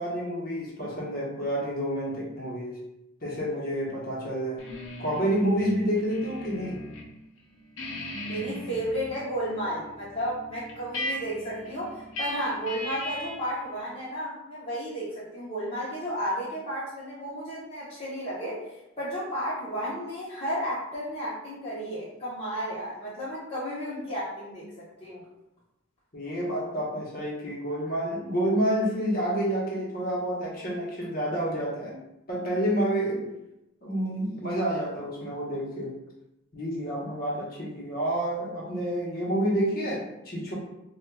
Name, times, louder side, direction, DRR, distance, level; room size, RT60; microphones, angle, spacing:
voice 1, 0.0-2.8 3.2-4.6 5.0-6.8 26.1-32.0 32.3-33.3 33.8-35.9 36.5-40.5, right 1 dB, 45° left, -5 dB, 1.0 m, -29 dB
sound 1, 4.6-7.1 7.4-13.5, left 1 dB, 80° left, 0.7 m, -38 dB
voice 2, 8.2-25.2, equal, 30° left, -10 dB, 0.8 m, -33 dB
4.3 x 2.3 x 2.2 m, 0.91 s
head